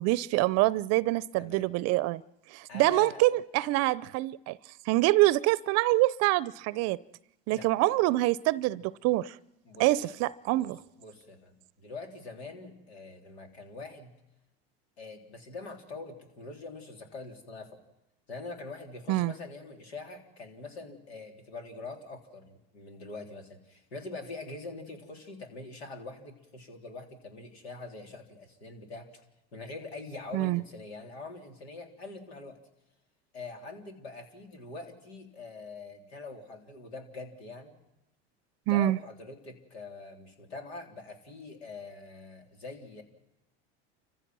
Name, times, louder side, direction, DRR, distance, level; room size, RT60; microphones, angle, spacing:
voice 1, 0.0-2.2 2.5-4.6 4.9-7.0 7.5-9.4 9.8-10.8 19.1-19.3 30.3-30.6 38.7-39.0, right 18 dB, 55° right, 0.6 m, -25 dB
voice 2, 1.3-1.7 2.7-3.2 7.5-7.7 8.7-8.8 9.6-14.1 15.0-17.8 18.3-29.3 29.5-32.6 33.3-37.8 38.7-43.0, left 3 dB, 90° left, 3.6 m, -44 dB
29.0 x 15.5 x 6.1 m
hypercardioid pair, 95°, 31 cm